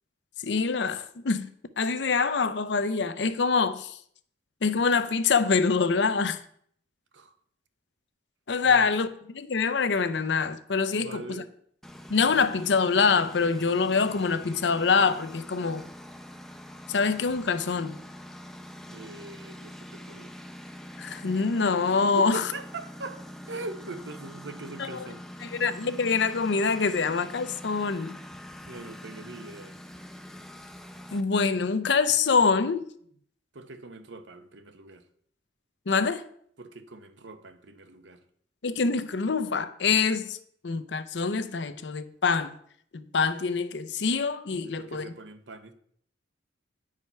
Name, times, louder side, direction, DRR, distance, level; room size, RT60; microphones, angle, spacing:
voice 1, 0.4-1.5 1.8-4.0 4.6-6.4 8.5-11.4 12.1-15.9 16.9-18.0 21.0-22.4 24.8-24.9 25.4-28.1 31.1-32.8 35.9-36.2 38.6-40.4 40.6-42.6 42.9-45.1, left 5 dB, 65° left, 0.6 m, -25 dB
voice 2, 10.9-11.5 18.9-20.3 22.2-25.5 28.5-29.8 33.5-35.1 36.6-38.2 44.6-45.7, right 3 dB, 70° right, 0.9 m, -42 dB
Engine, 11.8-31.2, equal, ahead, 0.6 m, -44 dB
9.5 x 4.9 x 5.6 m
head